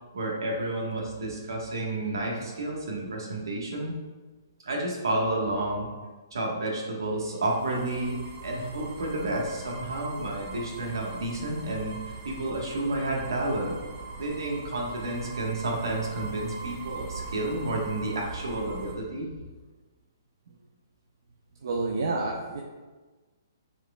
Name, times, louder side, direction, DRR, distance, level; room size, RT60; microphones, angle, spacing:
voice 1, 0.1-3.9 4.6-5.9 6.3-13.8 14.2-19.3, right 2 dB, 90° right, -2 dB, 1.5 m, -31 dB
sound 1, 7.2-19.0, right 4 dB, 25° right, 0.8 m, -41 dB
voice 2, 21.5-22.6, right 3 dB, 65° right, 0 dB, 0.8 m, -31 dB
9.9 x 4.7 x 2.4 m, 1.3 s
hypercardioid pair, 160°, 2 cm